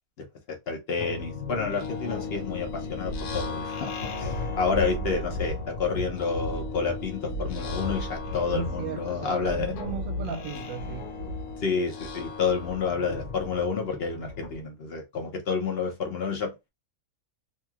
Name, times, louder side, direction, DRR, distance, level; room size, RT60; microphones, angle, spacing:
voice 1, 0.2-9.7 11.6-16.5, left 5 dB, 55° left, 0.7 m, -29 dB
sound 1, 1.0-14.6, left 3 dB, 80° left, 1.1 m, -34 dB
voice 2, 8.5-11.1, right 6 dB, 70° right, 0.9 m, -35 dB
2.9 x 2.7 x 2.3 m
omnidirectional pair, 1.5 m